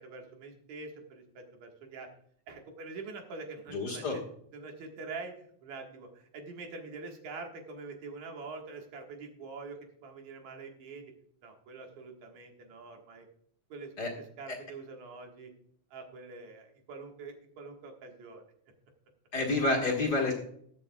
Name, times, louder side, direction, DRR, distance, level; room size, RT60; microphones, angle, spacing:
voice 1, 0.0-2.1 2.5-4.2 4.5-11.1 11.4-13.3 13.7-13.9 14.4-15.5 15.9-18.4, right 3 dB, 75° right, 2 dB, 2.9 m, -45 dB
voice 2, 3.7-4.2 14.0-14.1 14.5-14.6 19.3-20.3, left 2 dB, 40° left, -1 dB, 1.8 m, -29 dB
20.5 x 7.3 x 2.2 m, 0.68 s
omnidirectional pair, 3.3 m